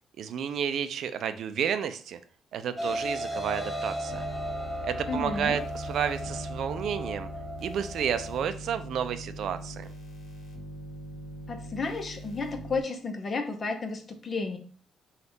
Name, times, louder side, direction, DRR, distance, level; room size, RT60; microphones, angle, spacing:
voice 1, 0.2-2.2 2.5-4.2 4.8-7.3 7.6-9.8, right 8 dB, 70° right, 10 dB, 0.4 m, -31 dB
sound 1, 2.8-8.4, equal, 5° left, 1.1 m, -35 dB
sound 2, 4.1-12.8, right 1 dB, 70° left, 1.0 m, -42 dB
voice 2, 5.1-5.6 11.5-14.6, left 3 dB, 40° left, 6 dB, 0.7 m, -32 dB
3.4 x 2.4 x 4.0 m, 0.43 s
cardioid pair, 90°, 0 cm